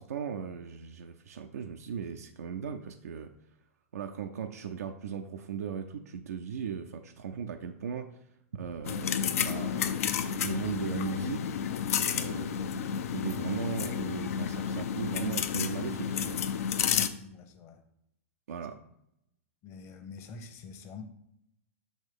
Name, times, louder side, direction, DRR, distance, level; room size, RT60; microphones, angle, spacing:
voice 1, 0.0-3.3 3.9-8.1 8.5-11.5 12.1-12.9 13.1-16.4 18.5-18.8, right 7 dB, 80° right, 4 dB, 0.5 m, -37 dB
sound 1, 8.8-17.1, left 8 dB, 65° left, 0.5 m, -31 dB
voice 2, 16.9-17.8 19.6-21.0, left 5 dB, 35° left, 7 dB, 0.9 m, -46 dB
6.3 x 3.1 x 5.2 m, 0.76 s
hypercardioid pair, 120°, 8 cm